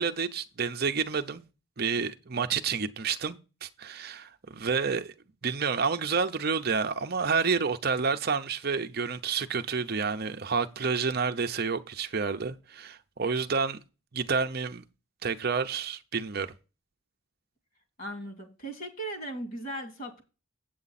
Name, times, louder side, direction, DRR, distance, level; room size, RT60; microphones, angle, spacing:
voice 1, 0.0-1.4 1.8-5.1 5.4-13.8 14.1-14.8 15.2-16.5, right 5 dB, 50° right, 0.7 m, -29 dB
voice 2, 18.0-20.2, right 1 dB, 40° left, 2.6 m, -37 dB
8.7 x 7.8 x 4.1 m
head